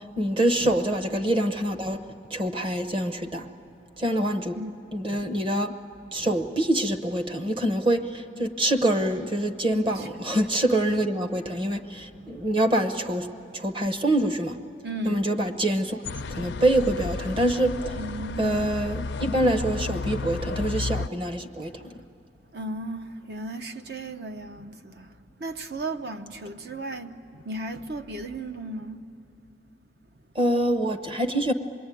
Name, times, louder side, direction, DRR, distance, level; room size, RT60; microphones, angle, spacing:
voice 1, 0.0-2.0 2.3-3.5 4.0-4.6 4.9-5.7 6.1-13.3 13.5-14.6 15.0-16.0 16.3-17.9 18.4-21.9 30.3-31.5, right 1 dB, 30° right, 0.9 m, -25 dB
voice 2, 14.8-15.3 18.0-18.7 21.6-21.7 22.5-25.1 25.4-29.0, right 2 dB, 60° right, 0.9 m, -35 dB
sound 1, 16.0-21.1, left 3 dB, 90° left, 0.5 m, -32 dB
26.0 x 21.0 x 9.2 m
head